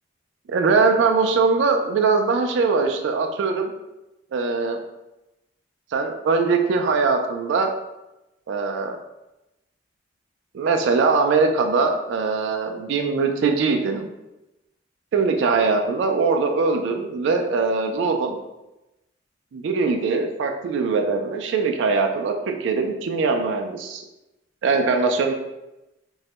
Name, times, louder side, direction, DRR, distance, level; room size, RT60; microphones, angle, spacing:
voice 1, 0.5-3.7 4.3-4.8 5.9-7.7 8.5-9.0 10.5-14.1 15.1-18.4 19.5-24.0 24.6-25.3, right 4 dB, 75° right, 5 dB, 0.3 m, -21 dB
2.2 x 2.0 x 2.8 m, 0.96 s
head